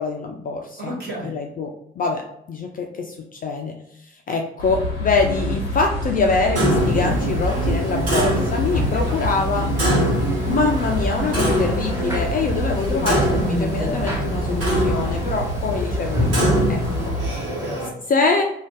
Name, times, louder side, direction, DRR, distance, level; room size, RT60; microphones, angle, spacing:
voice 1, 0.0-0.9 1.2-1.7 2.0-3.8 4.0-9.7 10.5-16.8 18.1-18.4, left 4 dB, 30° left, 2 dB, 0.4 m, -24 dB
voice 2, 0.8-1.3 8.7-9.9 17.2-18.0, right 1 dB, 35° right, -4 dB, 1.3 m, -35 dB
sound 1, 4.6-17.3, left 1 dB, 80° left, 0.6 m, -29 dB
sound 2, 5.2-17.1, equal, 10° right, 0.9 m, -27 dB
Clock, 6.6-17.9, right 1 dB, 55° right, 1.3 m, -25 dB
2.5 x 2.2 x 3.7 m, 0.78 s
figure-of-eight pair, 40°, 29 cm